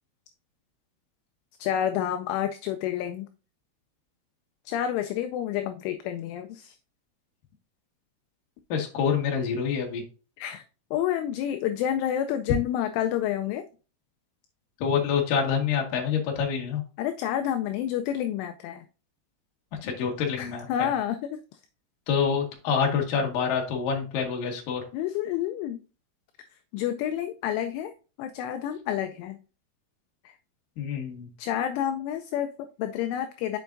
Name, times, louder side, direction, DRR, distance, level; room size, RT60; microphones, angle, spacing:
voice 1, 1.6-3.3 4.7-6.8 10.4-10.6 10.9-13.6 17.0-18.9 20.4-21.4 24.9-25.8 26.7-27.9 28.2-29.4 30.3-30.4 31.4-33.6, left 10 dB, 85° left, 8 dB, 2.8 m, -29 dB
voice 2, 8.7-10.0 14.8-16.8 19.8-20.9 22.1-24.8 30.8-31.3, left 6 dB, 60° left, 1 dB, 2.4 m, -27 dB
7.2 x 6.8 x 2.6 m, 0.35 s
omnidirectional pair, 5.9 m